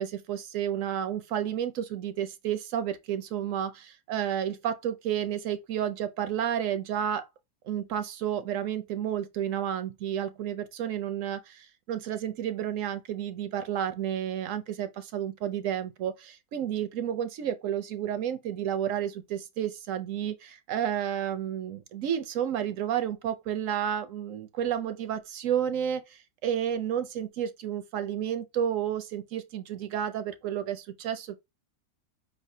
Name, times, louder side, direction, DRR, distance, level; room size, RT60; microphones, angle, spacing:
voice 1, 0.0-7.3 7.6-31.4, right 9 dB, 70° right, 0.9 m, -31 dB
5.2 x 3.3 x 2.6 m
omnidirectional pair, 1.5 m